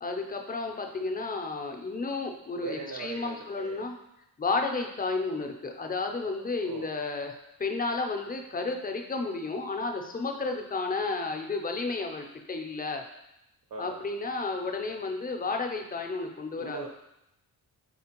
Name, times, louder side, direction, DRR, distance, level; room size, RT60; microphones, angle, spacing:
voice 1, 0.0-3.9 4.4-13.0 13.8-16.9, left 3 dB, 25° left, 4 dB, 0.4 m, -32 dB
voice 2, 2.6-3.8 6.4-6.9 13.7-14.0 16.6-16.9, right 5 dB, 70° right, 0 dB, 0.6 m, -40 dB
4.4 x 4.2 x 2.9 m, 0.84 s
wide cardioid pair, 165°, 36 cm